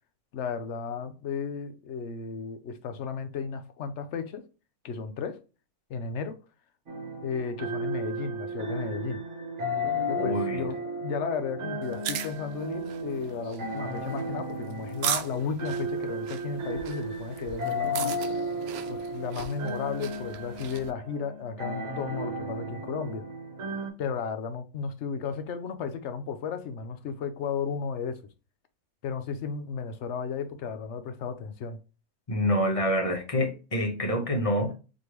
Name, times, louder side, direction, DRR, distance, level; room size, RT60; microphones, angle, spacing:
voice 1, 0.3-4.4 4.8-5.4 5.9-6.4 7.2-9.2 10.1-18.2 18.9-23.3 24.0-28.2 29.0-31.8, left 6 dB, 60° left, 0.9 m, -34 dB
sound 1, 6.9-23.9, equal, 50° right, 1.3 m, -34 dB
voice 2, 10.1-10.7 32.3-34.7, equal, 30° left, 0.8 m, -27 dB
sound 2, 11.8-20.9, right 9 dB, 75° right, 1.0 m, -38 dB
4.2 x 3.3 x 3.0 m
omnidirectional pair, 1.6 m